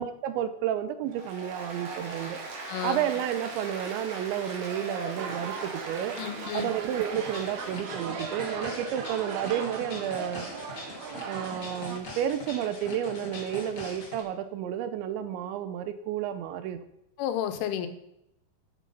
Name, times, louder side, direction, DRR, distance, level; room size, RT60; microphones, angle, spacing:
voice 1, 0.0-2.4 2.8-6.2 6.5-10.5 11.3-16.8, right 10 dB, 80° right, 11 dB, 2.9 m, -31 dB
Applause, 1.1-8.1, right 3 dB, 45° right, 3.4 m, -40 dB
voice 2, 2.7-3.0 6.2-6.7 17.2-17.9, left 10 dB, 85° left, 9 dB, 3.5 m, -31 dB
sound 1, 5.2-12.0, right 5 dB, 65° right, 2.9 m, -38 dB
sound 2, 7.1-14.2, left 2 dB, 65° left, 0.7 m, -42 dB
10.5 x 9.6 x 5.6 m, 0.81 s
omnidirectional pair, 5.5 m